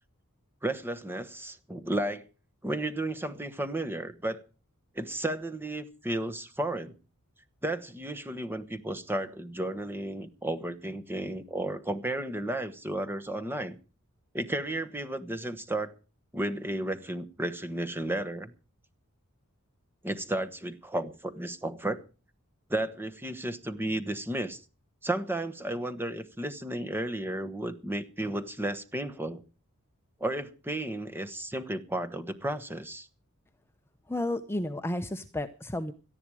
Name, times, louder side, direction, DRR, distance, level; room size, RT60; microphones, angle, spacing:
voice 1, 0.6-2.3 2.6-4.4 4.9-7.0 7.6-13.8 14.3-15.9 16.3-18.5 20.0-22.0 22.7-24.6 25.0-29.4 30.2-33.1, right 1 dB, 10° right, 1.2 m, -33 dB
voice 2, 34.1-35.9, left 1 dB, 10° left, 0.8 m, -32 dB
18.0 x 13.0 x 4.9 m
head